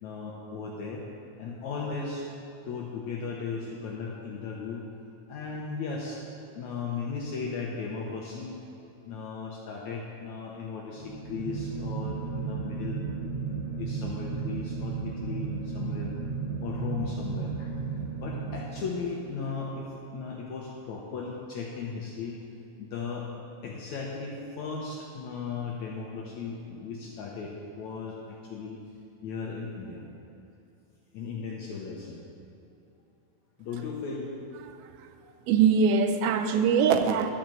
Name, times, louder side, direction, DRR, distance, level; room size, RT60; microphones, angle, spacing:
voice 1, 0.0-1.1 1.4-2.3 2.6-4.9 5.3-8.6 9.0-13.0 13.8-16.1 16.6-17.7 18.2-22.4 22.8-23.3 23.6-28.8 29.2-30.0 31.1-32.2 33.6-34.3, left 5 dB, 75° left, -2 dB, 1.7 m, -36 dB
sound 1, 10.9-19.2, right 5 dB, 35° right, 1.8 m, -34 dB
voice 2, 35.5-37.3, right 6 dB, 85° right, 8 dB, 2.5 m, -22 dB
12.0 x 5.0 x 7.6 m, 2.7 s
omnidirectional pair, 4.2 m